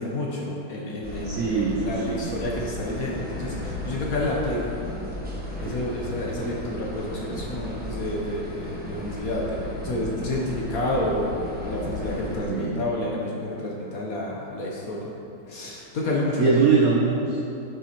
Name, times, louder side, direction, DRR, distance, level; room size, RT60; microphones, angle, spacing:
voice 1, 0.0-4.7 5.6-15.1 15.5-16.5, left 1 dB, 55° left, -3 dB, 1.1 m, -29 dB
sound 1, 1.0-12.4, equal, 5° right, 0.7 m, -35 dB
voice 2, 1.2-2.3 5.6-5.8 12.5-12.9 16.4-17.5, right 4 dB, 75° right, -2 dB, 0.7 m, -23 dB
8.9 x 7.1 x 3.0 m, 2.8 s
omnidirectional pair, 2.2 m